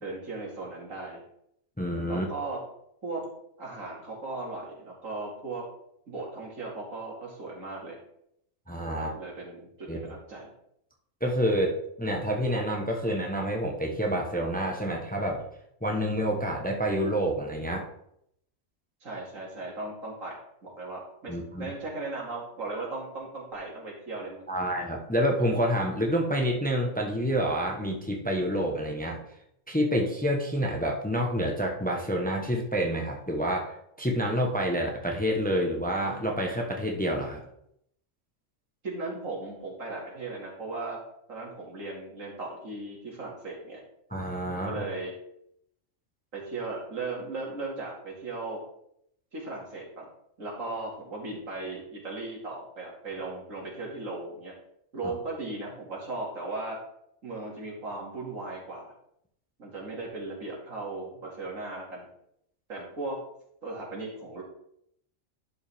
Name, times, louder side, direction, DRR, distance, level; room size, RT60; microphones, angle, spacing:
voice 1, 0.0-1.2 2.1-2.6 3.0-3.2 3.6-5.7 6.1-8.0 8.9-10.5 19.0-20.4 20.6-24.7 33.4-33.5 38.8-41.0 41.3-43.8 44.5-45.1 46.3-48.6 49.3-50.1 50.4-54.5 54.9-56.8 57.2-58.9 59.6-62.1 62.7-63.2 63.6-64.4, right 2 dB, 80° right, -3 dB, 2.8 m, -37 dB
voice 2, 1.8-2.3 8.7-9.1 9.9-10.0 11.2-15.4 15.8-17.9 21.3-21.7 24.5-29.2 29.7-37.5 44.1-44.8 55.0-55.1, equal, 5° left, 1 dB, 1.0 m, -28 dB
11.5 x 5.4 x 3.5 m, 0.74 s
omnidirectional pair, 1.4 m